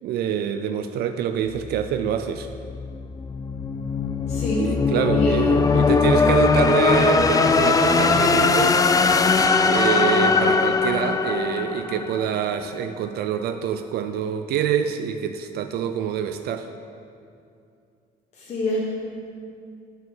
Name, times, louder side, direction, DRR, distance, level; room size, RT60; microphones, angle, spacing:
voice 1, 0.0-2.5 4.6-8.9 9.7-16.7, right 9 dB, 70° right, 8 dB, 0.5 m, -26 dB
sound 1, 1.5-12.5, left 4 dB, 20° left, 0.4 m, -20 dB
voice 2, 4.3-4.8 5.1-5.6 18.3-18.8, left 1 dB, 40° left, -6 dB, 1.4 m, -27 dB
7.3 x 5.9 x 6.1 m, 2.4 s
cardioid pair, 110°, 17 cm